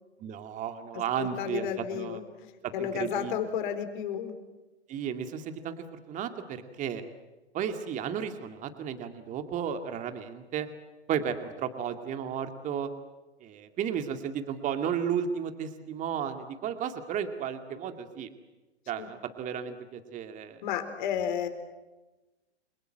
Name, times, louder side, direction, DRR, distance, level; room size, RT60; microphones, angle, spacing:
voice 1, 0.2-1.7 1.9-2.2 2.6-3.3 4.9-7.0 7.5-10.7 11.1-12.9 13.4-18.3 18.9-20.6, right 8 dB, 20° right, 8 dB, 2.2 m, -33 dB
voice 2, 1.2-4.3 19.0-19.1 20.6-21.5, left 9 dB, 45° left, 8 dB, 4.4 m, -32 dB
29.5 x 23.5 x 7.8 m, 1.1 s
figure-of-eight pair, 115°, 33 cm